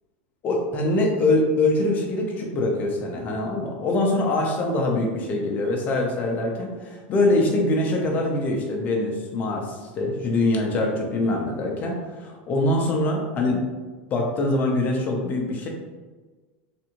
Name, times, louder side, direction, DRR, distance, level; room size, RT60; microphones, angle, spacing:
voice 1, 0.4-13.6 14.1-15.7, left 2 dB, 25° left, 0 dB, 0.6 m, -23 dB
3.4 x 2.6 x 2.9 m, 1.3 s
supercardioid pair, 160°, 6 cm